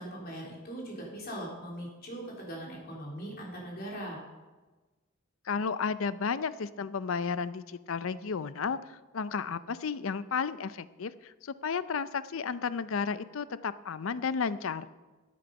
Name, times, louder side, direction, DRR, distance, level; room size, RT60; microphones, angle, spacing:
voice 1, 0.0-4.2, right 1 dB, 50° left, -2 dB, 3.5 m, -40 dB
voice 2, 5.5-8.8 9.1-14.9, left 5 dB, 80° left, 15 dB, 0.5 m, -33 dB
14.0 x 8.5 x 5.3 m, 1.2 s
head